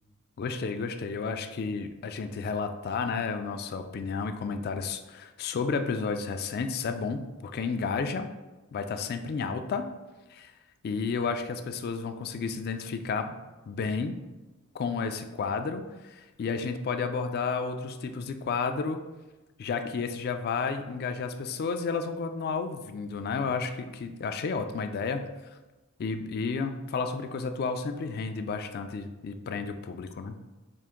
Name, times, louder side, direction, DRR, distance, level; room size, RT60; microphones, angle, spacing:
voice 1, 0.4-8.3 8.7-9.8 10.3-10.5 10.8-13.3 13.7-14.2 14.7-19.0 19.6-25.3 26.0-30.3, left 5 dB, 45° left, 8 dB, 0.3 m, -32 dB
4.6 x 2.5 x 3.6 m, 1.1 s
head